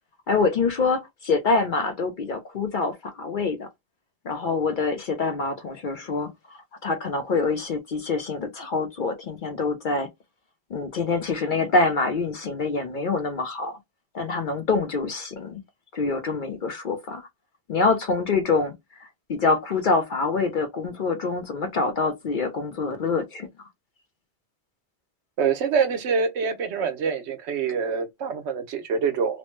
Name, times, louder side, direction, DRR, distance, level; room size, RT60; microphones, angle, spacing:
voice 1, 0.3-3.7 4.2-10.1 10.7-13.8 14.1-15.6 15.9-17.3 17.7-23.5, left 4 dB, 55° left, 0.6 m, -25 dB
voice 2, 25.4-29.4, right 6 dB, 75° right, 0.9 m, -25 dB
3.0 x 2.1 x 3.0 m
omnidirectional pair, 1.2 m